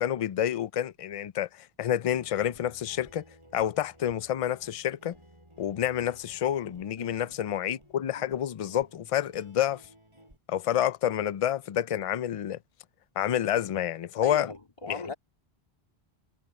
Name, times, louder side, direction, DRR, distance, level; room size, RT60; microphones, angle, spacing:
voice 1, 0.0-3.2 3.5-5.1 5.6-9.8 10.5-12.6 13.2-14.5 14.9-15.0, left 10 dB, 55° left, 0.4 m, -29 dB
Guitar, 2.1-10.4, equal, 25° right, 8.2 m, -56 dB
voice 2, 14.2-15.1, left 3 dB, 30° left, 2.7 m, -38 dB
omnidirectional pair, 1.1 m